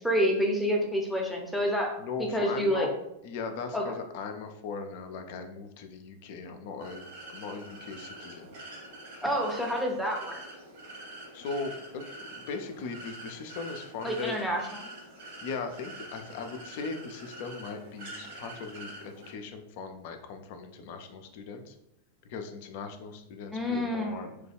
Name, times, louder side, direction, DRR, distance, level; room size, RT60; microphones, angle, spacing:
voice 1, 0.0-2.9 3.7-3.8 9.2-10.4 14.0-14.9 23.5-24.2, equal, ahead, 0 dB, 0.6 m, -28 dB
voice 2, 2.0-2.9 3.2-8.5 11.3-14.6 15.4-21.8 22.2-24.3, left 4 dB, 50° left, 6 dB, 0.4 m, -39 dB
sound 1, 6.8-19.3, right 1 dB, 55° right, 1.1 m, -45 dB
3.1 x 2.2 x 3.4 m, 0.82 s
figure-of-eight pair, 90°, 0 cm